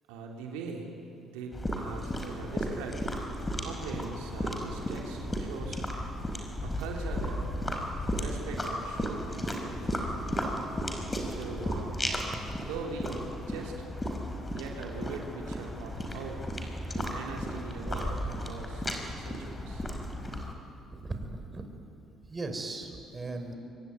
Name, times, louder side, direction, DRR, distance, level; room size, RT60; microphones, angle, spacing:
voice 1, 0.1-0.9 1.3-3.1 3.6-5.8 6.6-7.5 8.1-10.2 11.3-12.0 12.6-13.8 14.5-16.4 16.9-19.9, right 4 dB, 90° right, 0 dB, 3.1 m, -41 dB
sound 1, 1.5-20.5, equal, 20° left, 5.1 m, -34 dB
voice 2, 20.9-21.6 22.3-23.5, right 2 dB, 25° right, 5 dB, 4.6 m, -37 dB
24.0 x 24.0 x 9.5 m, 2.7 s
supercardioid pair, 70°, 0 cm